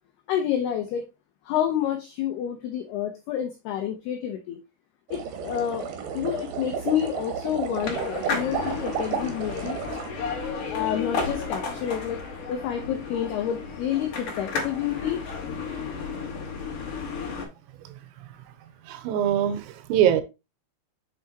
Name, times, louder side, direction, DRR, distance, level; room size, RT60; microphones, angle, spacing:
voice 1, 0.3-1.1 1.5-4.6 5.1-10.0 10.7-12.2 12.5-15.3, left 10 dB, 85° left, 2.3 m, -29 dB
sound 1, 5.1-10.1, right 7 dB, 70° right, 3.6 m, -32 dB
sound 2, 7.8-17.5, left 5 dB, 55° left, 2.7 m, -33 dB
voice 2, 18.9-20.2, right 10 dB, 90° right, 3.6 m, -23 dB
7.6 x 5.7 x 2.9 m
omnidirectional pair, 5.8 m